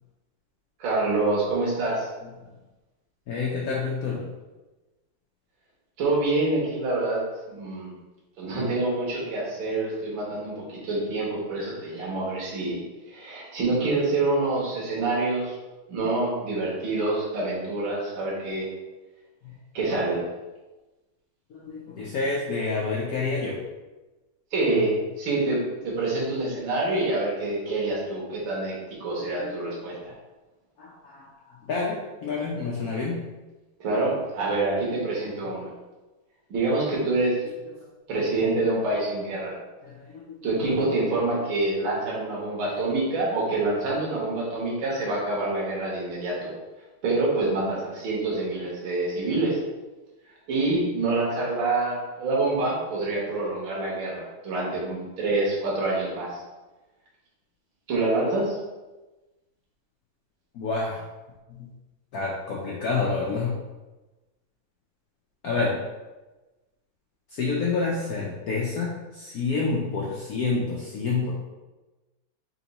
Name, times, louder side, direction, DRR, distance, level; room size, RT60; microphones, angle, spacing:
voice 1, 0.8-2.1 6.0-7.2 7.5-7.9 8.4-12.8 13.1-15.5 15.9-18.7 19.7-20.2 24.5-28.8 29.0-30.1 33.8-35.7 36.5-37.4 38.1-39.5 40.4-46.5 47.0-49.6 50.5-56.4 57.9-58.6, right 2 dB, 65° right, -5 dB, 2.0 m, -26 dB
voice 2, 3.3-4.2 21.5-23.6 29.2-29.7 30.8-31.3 31.6-33.2 39.8-40.4 40.8-40.9 42.7-42.8 60.5-61.0 61.6-61.7 62.1-63.6 65.4-65.8 67.3-71.3, left 4 dB, 80° left, -4 dB, 0.8 m, -28 dB
4.4 x 2.9 x 4.0 m, 1.1 s
omnidirectional pair, 2.3 m